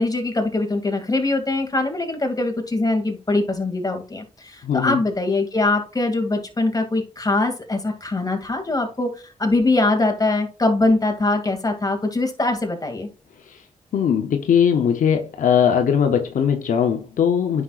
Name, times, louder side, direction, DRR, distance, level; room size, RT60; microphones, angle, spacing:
voice 1, 0.0-13.1, left 2 dB, 30° left, 2.4 m, -22 dB
voice 2, 4.6-5.0 13.5-13.6 13.9-17.6, left 8 dB, 90° left, 0.8 m, -20 dB
9.8 x 6.0 x 2.5 m
cardioid pair, 60°, 13 cm